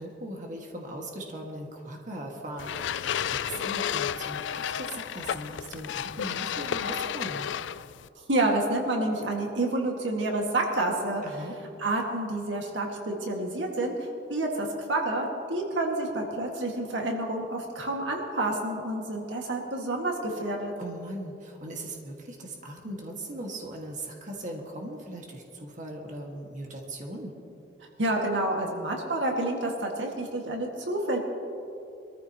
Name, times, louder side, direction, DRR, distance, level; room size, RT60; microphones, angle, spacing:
voice 1, 0.0-3.0 3.3-7.5 11.2-11.6 20.8-27.3, right 1 dB, 45° right, 0 dB, 1.8 m, -39 dB
sound 1, 2.6-8.1, left 8 dB, 80° left, 0.4 m, -32 dB
voice 2, 8.3-11.2 11.8-20.7 28.0-31.2, right 2 dB, 90° right, 1 dB, 1.9 m, -29 dB
23.0 x 14.0 x 3.0 m, 2.6 s
head